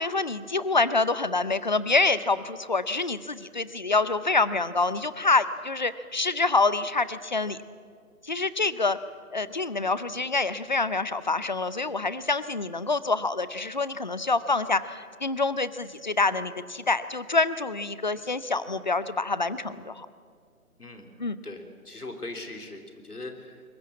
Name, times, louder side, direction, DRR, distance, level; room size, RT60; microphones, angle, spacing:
voice 1, 0.0-7.6 8.2-9.0 9.3-20.1 21.2-21.4, left 3 dB, 30° left, 15 dB, 0.6 m, -26 dB
voice 2, 20.8-21.1 21.4-23.6, left 2 dB, 90° left, 5 dB, 3.4 m, -40 dB
22.5 x 19.5 x 8.5 m, 2.2 s
figure-of-eight pair, 155°, 44 cm